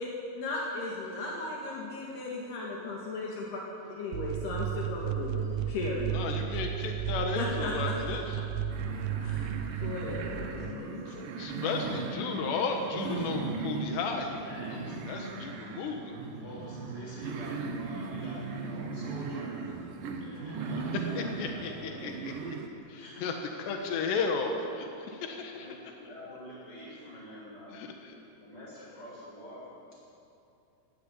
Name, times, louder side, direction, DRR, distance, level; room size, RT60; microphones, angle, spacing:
voice 1, 0.4-3.6 4.0-6.2 7.4-7.9 9.2-9.5 9.8-11.0, left 3 dB, 70° left, -3 dB, 4.1 m, -36 dB
sound 1, 4.1-10.7, right 10 dB, 80° right, 2.5 m, -34 dB
voice 2, 6.1-8.4 11.4-14.4 14.7-16.1 21.2-22.3 22.9-23.3 23.7-24.9 25.2-25.7 27.7-27.9, left 4 dB, 85° left, 3 dB, 3.5 m, -34 dB
sound 2, 8.7-22.7, right 4 dB, 65° right, 2.6 m, -37 dB
voice 3, 10.9-11.5 14.4-15.3 16.3-19.6 20.1-22.1 22.9-23.3 23.8-24.1 25.1-27.8 28.3-29.7, left 1 dB, 25° left, -6 dB, 7.5 m, -47 dB
17.0 x 15.0 x 9.9 m, 2.7 s
omnidirectional pair, 4.8 m